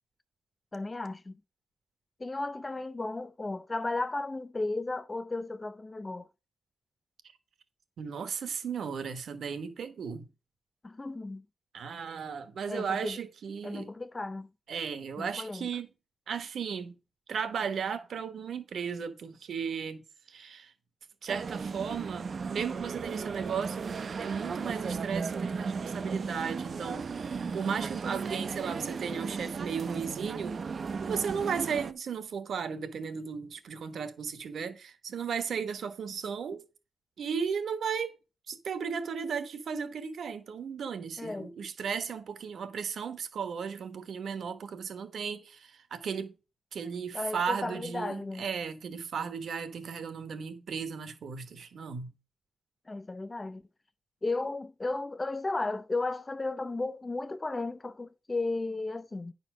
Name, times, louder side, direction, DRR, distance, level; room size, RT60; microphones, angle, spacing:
voice 1, 0.7-1.4 2.2-6.3 10.8-11.4 12.7-13.2 13.6-14.5 15.2-15.7 41.2-41.5 47.1-48.5 52.9-53.6 54.2-59.3, left 2 dB, 20° left, 0.4 m, -34 dB
voice 2, 8.0-10.3 11.7-13.9 14.7-15.9 16.3-16.9 17.3-20.7 21.2-27.1 27.5-30.6 31.1-36.6 37.2-38.2 38.5-46.3 46.7-52.1, right 6 dB, 60° right, 1.2 m, -35 dB
sound 1, 21.3-31.9, right 5 dB, 40° right, 0.5 m, -35 dB
10.0 x 4.3 x 6.1 m
wide cardioid pair, 155°, 0 cm